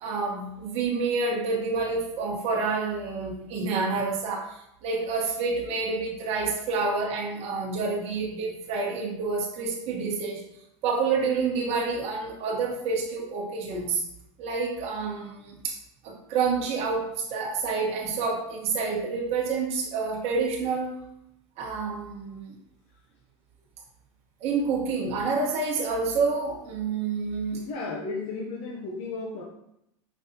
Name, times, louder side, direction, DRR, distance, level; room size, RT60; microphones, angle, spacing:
voice 1, 0.0-4.5 4.8-10.4 10.8-14.0 14.4-15.8 16.0-20.9 21.6-22.6 24.4-27.6, right 4 dB, 45° right, -2 dB, 1.3 m, -28 dB
voice 2, 27.5-29.4, left 3 dB, 45° left, -2 dB, 0.7 m, -34 dB
5.1 x 3.2 x 2.8 m, 0.78 s
supercardioid pair, 120°, 15 cm